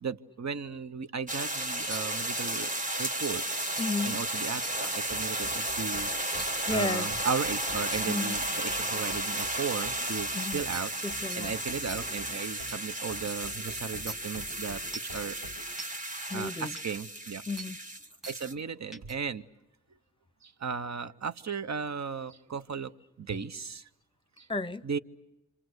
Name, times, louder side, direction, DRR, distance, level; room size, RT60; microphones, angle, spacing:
voice 1, 0.0-3.7 4.0-10.9 11.4-15.4 16.3-17.4 18.3-19.4 20.4-22.9 23.2-23.9 24.4-24.5 24.8-25.0, right 6 dB, 55° right, 0.9 m, -36 dB
sound 1, 1.3-18.5, right 1 dB, 25° right, 1.5 m, -33 dB
sound 2, 1.9-2.0 2.7-2.8 3.2-3.3 3.8-3.9 4.6-4.7 6.4-6.5 7.3-7.4 7.9-8.0 8.5-8.6 9.4-9.5 10.1-10.2 10.7-10.8 11.3-11.4 11.9-12.0 12.7-12.8 13.3-13.4 14.1-14.2 14.9-15.1 15.8-15.9 16.8-16.9 17.6-17.7 18.2-18.4 18.9-19.1, right 1 dB, ahead, 1.5 m, -41 dB
voice 2, 3.8-4.2 6.7-7.1 8.1-8.4 10.3-10.6 11.0-11.6 16.3-16.7 17.5-17.8 24.5-24.9, left 3 dB, 15° left, 0.9 m, -33 dB
sound 3, 4.7-15.6, equal, 75° right, 4.0 m, -48 dB
28.0 x 26.5 x 8.0 m
cardioid pair, 50°, 33 cm